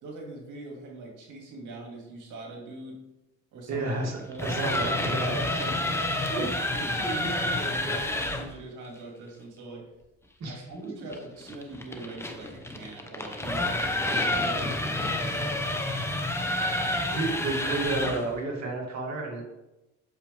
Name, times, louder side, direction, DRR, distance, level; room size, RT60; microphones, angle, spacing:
voice 1, 0.0-3.0 3.5-3.9 4.3-4.5 5.0-6.0 6.4-9.9 10.4-15.7, right 2 dB, 85° right, -1 dB, 2.3 m, -41 dB
voice 2, 3.7-5.4 6.3-6.7 10.4-10.6 11.0-11.1 17.1-19.4, right 3 dB, 60° right, -1 dB, 2.5 m, -31 dB
sound 1, 4.2-8.5 11.1-18.3, left 1 dB, 10° left, 1.0 m, -29 dB
8.1 x 6.6 x 3.5 m, 0.98 s
cardioid pair, 90°, 30 cm